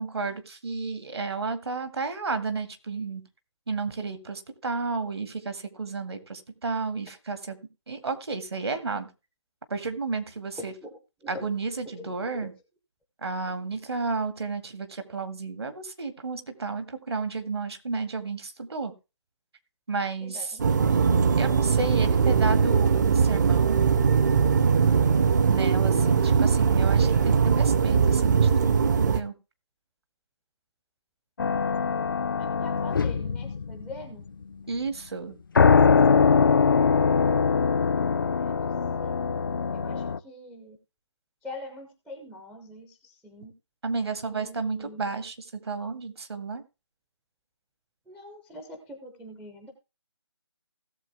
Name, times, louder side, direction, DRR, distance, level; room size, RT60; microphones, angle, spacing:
voice 1, 0.0-3.2 3.7-7.6 7.9-9.1 9.7-10.7 11.3-12.5 13.2-18.9 19.9-20.6 21.4-23.9 25.5-29.3 34.7-35.4 43.8-46.6, right 4 dB, 60° right, 8 dB, 2.0 m, -32 dB
voice 2, 10.6-10.9 11.2-11.5 11.8-12.5 20.2-20.9 32.4-34.2 38.4-38.5 39.0-39.3 39.7-40.8 41.4-43.5 44.3-45.1 48.1-49.7, left 1 dB, ahead, 4 dB, 0.5 m, -43 dB
sound 1, 20.6-29.2, right 6 dB, 40° right, 0.8 m, -21 dB
sound 2, 31.4-34.1 35.6-40.2, left 5 dB, 45° left, 0.5 m, -22 dB
16.5 x 7.2 x 3.4 m, 0.28 s
figure-of-eight pair, 155°, 15 cm